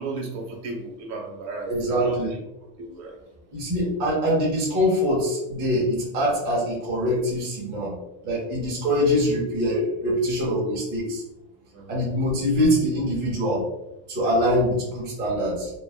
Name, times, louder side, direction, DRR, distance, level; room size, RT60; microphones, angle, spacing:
voice 1, 0.0-2.4 2.8-3.2 11.7-12.1, right 2 dB, 60° right, 0 dB, 1.0 m, -34 dB
voice 2, 1.6-2.3 3.5-7.9 8.2-11.2 11.9-13.6 14.1-15.7, equal, 25° right, -5 dB, 0.4 m, -24 dB
3.0 x 2.2 x 2.3 m, 0.90 s
cardioid pair, 175°, 45 cm